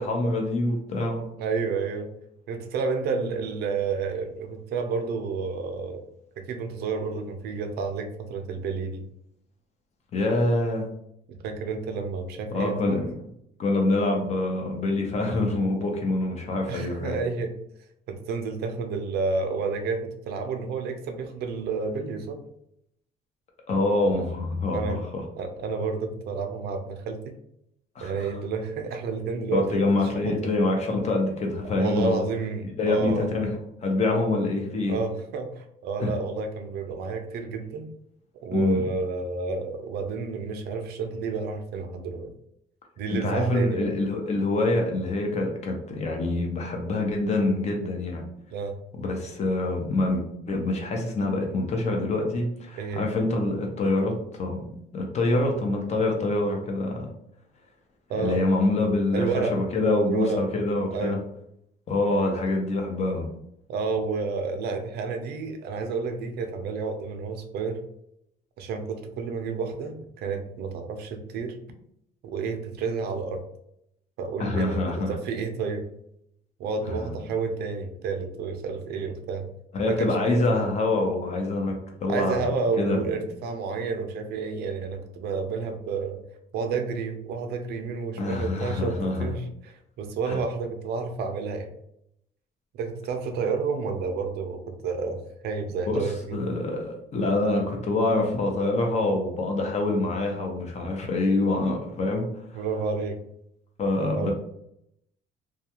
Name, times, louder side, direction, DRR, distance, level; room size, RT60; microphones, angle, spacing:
voice 1, 0.0-1.3 10.1-10.9 12.5-13.1 13.6-17.2 23.7-25.2 28.0-28.1 29.5-32.2 32.8-33.5 33.8-35.0 36.0-36.1 38.5-38.9 43.1-48.2 49.0-54.7 54.9-57.1 58.2-61.2 61.9-63.3 74.4-75.1 76.9-77.1 79.7-81.7 82.0-82.5 82.8-83.1 88.2-89.3 90.3-90.4 95.9-102.6 103.8-104.3, left 2 dB, 40° left, 2 dB, 0.7 m, -25 dB
voice 2, 1.4-2.1 2.5-6.0 6.4-9.0 11.4-13.0 16.7-17.5 18.1-22.4 24.7-25.1 25.4-27.4 28.0-29.9 30.2-30.5 31.6-33.3 34.9-37.9 38.4-42.3 43.0-43.9 48.5-48.8 52.8-53.0 58.1-58.4 59.1-59.6 60.1-60.4 60.9-61.2 63.7-67.8 68.6-71.6 72.2-73.4 74.2-75.9 76.6-79.5 79.9-80.6 82.1-86.2 86.5-89.5 90.0-91.7 92.8-96.4 102.5-103.2 104.0-104.3, right 4 dB, 70° right, 5 dB, 0.5 m, -30 dB
2.3 x 2.2 x 2.9 m, 0.75 s
cardioid pair, 110°, 17 cm